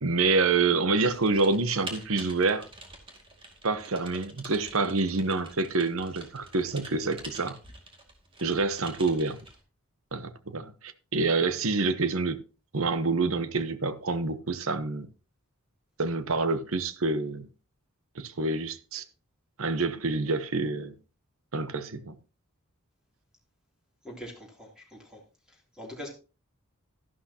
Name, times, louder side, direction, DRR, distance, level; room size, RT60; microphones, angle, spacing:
voice 1, 0.0-2.7 3.6-7.6 8.4-9.4 10.1-12.4 12.7-15.1 16.0-17.5 18.2-19.0 19.6-20.9 21.5-22.2, right 3 dB, 70° right, 1.0 m, -27 dB
Typing, 1.0-9.6, right 2 dB, 25° right, 2.1 m, -46 dB
voice 2, 24.0-25.2 25.5-26.1, equal, 5° right, 3.1 m, -43 dB
12.5 x 11.5 x 2.9 m
head